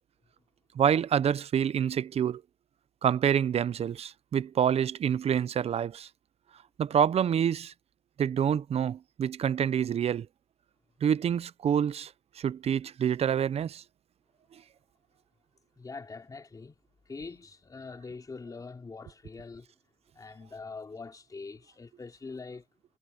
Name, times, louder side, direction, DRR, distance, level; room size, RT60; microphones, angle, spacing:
voice 1, 0.8-2.4 3.0-6.1 6.8-7.7 8.2-10.3 11.0-12.1 12.4-13.8, right 8 dB, 50° right, 0.7 m, -27 dB
voice 2, 15.8-16.8 17.1-19.7 20.1-22.7, left 4 dB, 25° left, 3.4 m, -43 dB
cardioid pair, 110°, 13 cm